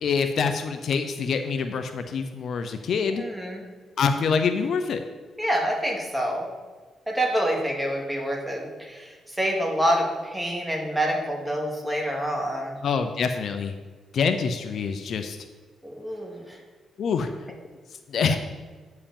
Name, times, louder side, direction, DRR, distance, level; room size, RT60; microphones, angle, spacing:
voice 1, 0.0-3.2 4.0-5.0 12.8-13.7 14.1-15.4 17.0-17.3 18.1-18.4, left 5 dB, 65° left, 7 dB, 0.6 m, -25 dB
voice 2, 3.1-3.6 5.4-6.5 7.1-12.8 15.8-16.6, equal, 5° right, -1 dB, 2.3 m, -27 dB
8.7 x 4.7 x 7.1 m, 1.4 s
cardioid pair, 70°, 0 cm